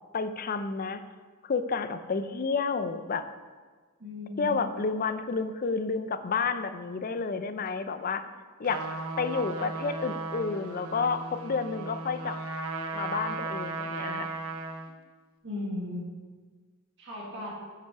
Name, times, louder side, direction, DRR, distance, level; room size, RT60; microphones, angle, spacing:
voice 1, 0.1-1.0 1.4-3.3 4.4-8.2 8.6-8.8 9.2-12.4 12.9-14.3, left 4 dB, 40° left, 10 dB, 0.5 m, -30 dB
voice 2, 4.0-4.6 15.4-16.1 17.0-17.5, left 1 dB, 55° right, -4 dB, 1.8 m, -36 dB
Trumpet, 8.6-14.9, right 3 dB, 85° right, 0.8 m, -36 dB
8.9 x 5.6 x 4.7 m, 1.5 s
head